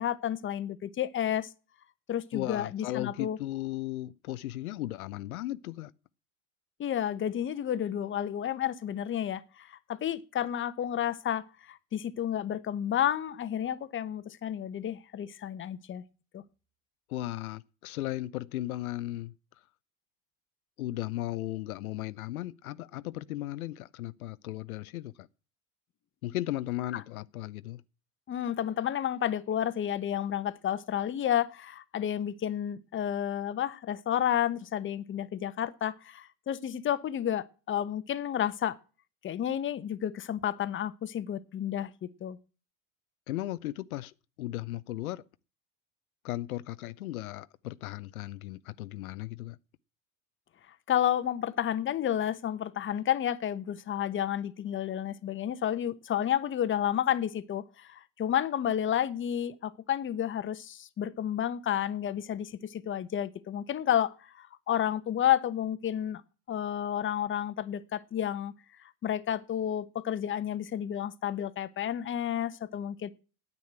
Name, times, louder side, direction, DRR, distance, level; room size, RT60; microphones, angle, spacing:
voice 1, 0.0-1.5 2.1-3.4 6.8-16.0 16.3-16.4 26.9-27.0 28.3-38.8 39.2-41.9 42.2-42.4 50.9-66.2 66.5-68.5 69.0-73.1, left 10 dB, 30° left, 0.9 m, -31 dB
voice 2, 2.3-5.9 17.1-19.3 20.8-25.3 26.2-27.8 43.3-44.1 44.4-45.2 46.2-49.6, left 15 dB, 85° left, 0.6 m, -36 dB
9.5 x 8.4 x 8.8 m
hypercardioid pair, 85°, 42 cm